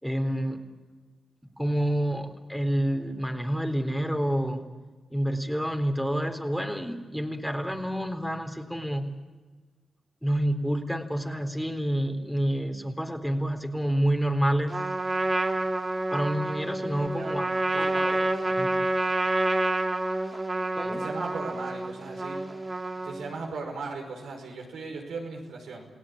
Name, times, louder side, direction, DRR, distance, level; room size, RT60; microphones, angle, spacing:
voice 1, 0.0-0.6 1.6-4.7 5.1-9.1 10.2-14.8 16.1-17.5 17.8-18.2 18.6-18.7 20.8-21.0, equal, ahead, 5 dB, 3.8 m, -28 dB
Trumpet, 14.7-23.4, right 2 dB, 30° right, 2.6 m, -28 dB
voice 2, 17.0-17.4 17.7-18.1 18.4-18.5 20.9-22.4 23.0-25.9, right 3 dB, 80° right, 0 dB, 5.3 m, -37 dB
29.5 x 17.5 x 8.8 m, 1.3 s
supercardioid pair, 45°, 0 cm